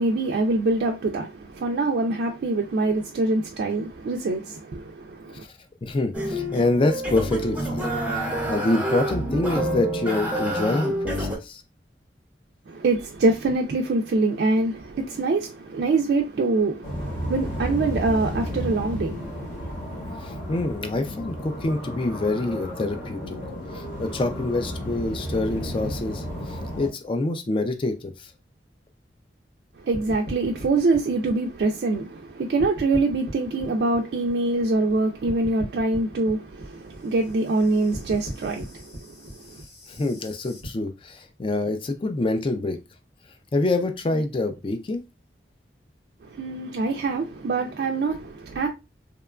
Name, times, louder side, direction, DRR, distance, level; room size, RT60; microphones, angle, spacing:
voice 1, 0.0-5.4 12.7-19.7 29.8-39.6 46.2-48.7, right 3 dB, 65° right, 0.3 m, -25 dB
voice 2, 5.8-7.9 8.4-11.6 20.2-23.4 23.7-28.3 39.9-42.8 43.5-45.0, left 2 dB, 30° left, 0.3 m, -26 dB
sound 1, 6.1-11.4, right 1 dB, 10° right, 0.6 m, -27 dB
sound 2, 16.8-26.9, equal, 50° left, 0.9 m, -33 dB
sound 3, 29.9-32.3 32.6-35.0 35.3-40.7, right 1 dB, 70° left, 1.2 m, -39 dB
2.9 x 2.2 x 2.3 m
head